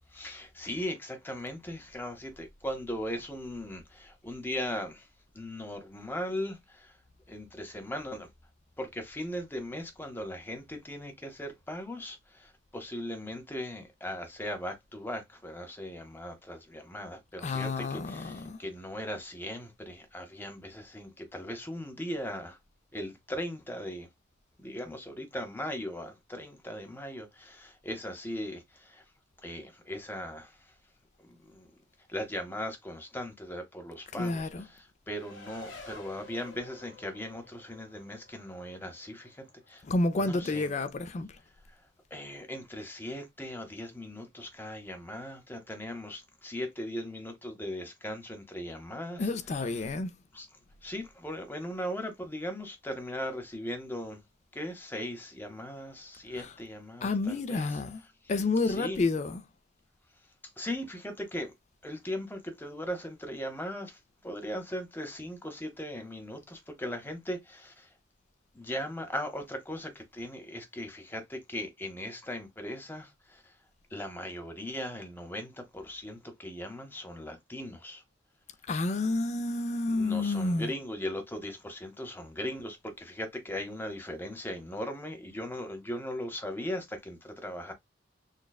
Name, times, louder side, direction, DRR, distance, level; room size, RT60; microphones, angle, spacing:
voice 1, 0.1-5.1 5.3-7.0 7.3-8.3 8.8-22.6 22.9-24.1 24.6-29.0 29.4-30.7 31.2-31.7 32.1-39.8 40.2-40.7 41.7-41.8 42.1-49.3 49.7-49.9 50.3-50.5 50.8-54.2 54.5-57.8 58.6-59.0 60.6-61.5 61.8-67.9 68.5-73.6 73.9-78.0 79.9-87.7, left 1 dB, 10° left, 0.9 m, -38 dB
voice 2, 17.4-18.6 34.1-34.6 39.9-41.4 49.2-50.1 56.4-56.5 57.0-58.0 58.3-59.4 78.7-80.7, left 3 dB, 35° left, 0.4 m, -30 dB
Race car auto racing, 35.2-40.1, left 2 dB, 75° left, 1.3 m, -50 dB
6.4 x 2.3 x 2.2 m
head